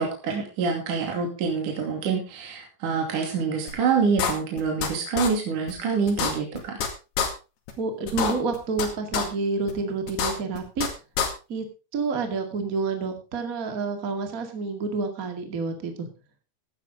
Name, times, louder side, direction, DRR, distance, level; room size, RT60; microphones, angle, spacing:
voice 1, 0.0-6.8, right 5 dB, 45° right, 1 dB, 3.6 m, -26 dB
sound 1, 3.7-3.8 4.2-4.9 5.2-5.3 5.7-5.8 6.1-6.9 7.2-7.3 7.7-7.8 8.1-8.9 9.1-9.2 9.7-9.8 10.1-10.9 11.2-11.3, left 6 dB, 60° left, 3.8 m, -26 dB
voice 2, 7.8-10.9 11.5-11.6 11.9-16.1, right 4 dB, 60° right, 5 dB, 0.8 m, -29 dB
16.0 x 10.5 x 3.7 m, 0.31 s
omnidirectional pair, 5.7 m